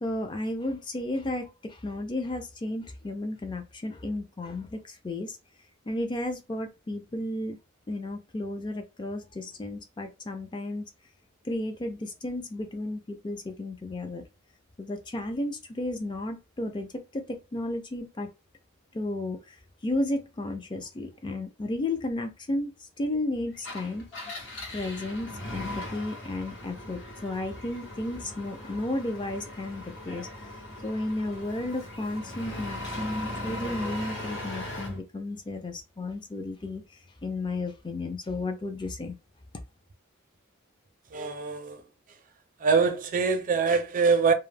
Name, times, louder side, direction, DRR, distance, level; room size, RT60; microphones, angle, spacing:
voice 1, 0.0-5.4 5.9-7.6 7.9-10.9 11.4-14.2 14.8-18.3 18.9-19.6 19.8-24.4 24.7-30.3 30.8-36.8 37.2-39.1, left 2 dB, 20° left, 0.4 m, -33 dB
Engine, 23.5-35.0, left 1 dB, 60° left, 0.9 m, -39 dB
voice 2, 41.1-41.8 42.6-44.3, right 5 dB, 40° right, 0.4 m, -24 dB
2.3 x 2.0 x 3.2 m
head